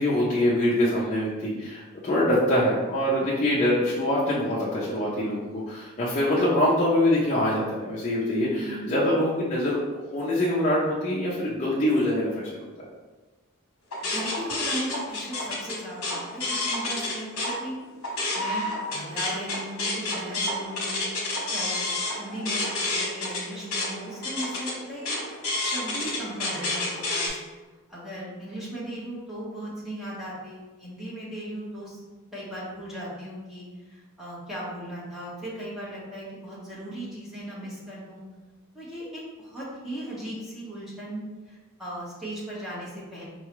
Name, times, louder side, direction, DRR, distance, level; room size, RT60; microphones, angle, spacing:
voice 1, 0.0-9.8 10.1-12.7, left 1 dB, 30° left, -7 dB, 0.6 m, -24 dB
voice 2, 8.4-8.9 14.0-17.8 18.3-21.1 21.5-27.4 27.9-32.0 32.3-38.2 38.7-43.3, right 1 dB, ahead, -9 dB, 1.1 m, -37 dB
sound 1, 13.9-17.5 17.9-27.3, left 2 dB, 70° left, 1.0 m, -29 dB
4.6 x 2.3 x 3.0 m, 1.2 s
head